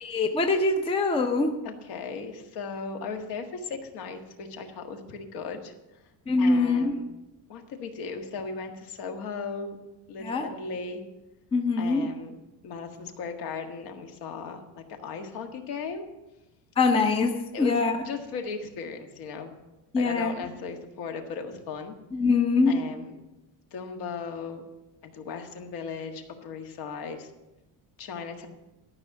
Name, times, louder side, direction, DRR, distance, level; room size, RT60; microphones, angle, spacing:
voice 1, 0.0-1.6 6.3-6.9 10.2-10.5 11.5-12.0 16.8-18.0 19.9-20.3 22.1-22.7, left 3 dB, 15° left, 5 dB, 0.6 m, -23 dB
voice 2, 1.6-5.7 6.4-7.0 7.5-9.8 10.1-11.0 11.8-12.3 12.6-16.0 17.5-19.5 19.9-22.0 22.7-23.2 23.7-24.6 25.0-27.3 28.0-28.5, left 5 dB, 60° left, 5 dB, 1.7 m, -37 dB
13.0 x 6.1 x 8.1 m, 0.98 s
cardioid pair, 170°, 42 cm